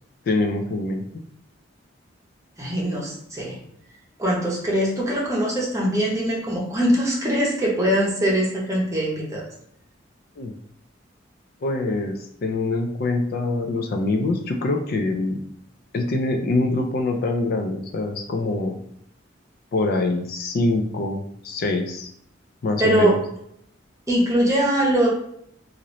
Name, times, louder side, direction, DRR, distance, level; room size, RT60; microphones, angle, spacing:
voice 1, 0.3-1.0 10.4-10.5 11.6-15.4 15.9-18.8 19.7-22.1 22.6-23.2, left 2 dB, 50° left, 4 dB, 0.3 m, -24 dB
voice 2, 2.6-3.6 4.2-9.4 22.8-23.2 24.1-25.1, right 1 dB, 15° right, -4 dB, 0.8 m, -22 dB
2.9 x 2.5 x 3.0 m, 0.71 s
head